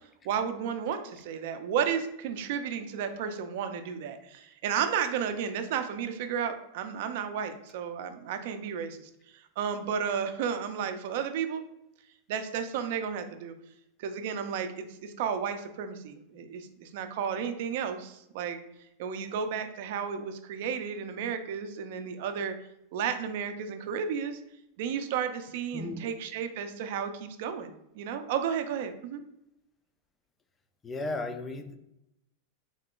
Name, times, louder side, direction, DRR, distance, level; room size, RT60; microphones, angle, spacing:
voice 1, 0.2-9.1 9.6-11.6 12.3-13.5 14.0-18.6 19.0-22.5 22.9-24.4 24.8-29.2, right 7 dB, 55° right, 8 dB, 0.5 m, -33 dB
voice 2, 25.7-26.1 30.8-31.8, left 2 dB, 15° left, 7 dB, 0.3 m, -35 dB
3.8 x 2.4 x 3.6 m, 0.83 s
supercardioid pair, 160°, 0 cm